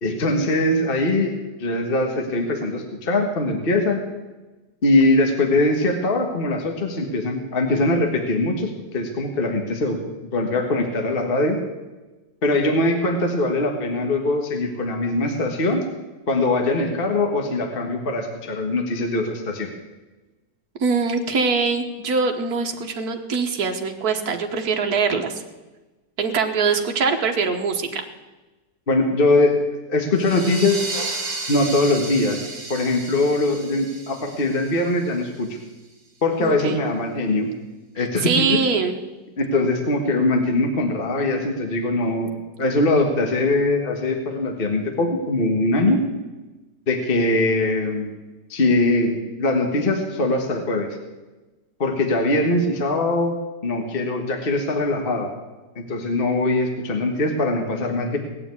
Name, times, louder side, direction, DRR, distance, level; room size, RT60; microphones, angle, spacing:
voice 1, 0.0-4.0 4.8-10.0 10.3-11.6 12.4-15.8 16.3-19.7 28.9-29.6 29.9-30.8 31.5-32.4 32.7-35.6 36.2-37.5 37.9-38.6 39.4-46.0 46.9-48.1 48.5-51.0 51.8-53.3 53.6-55.3 55.7-58.2, left 2 dB, 35° left, 3 dB, 1.6 m, -22 dB
voice 2, 20.8-25.3 26.2-28.0 36.4-36.8 38.0-38.9, right 4 dB, 65° right, 4 dB, 1.8 m, -23 dB
sound 1, 30.1-35.5, right 3 dB, 25° right, 2.0 m, -33 dB
18.5 x 7.1 x 9.6 m, 1.2 s
omnidirectional pair, 1.8 m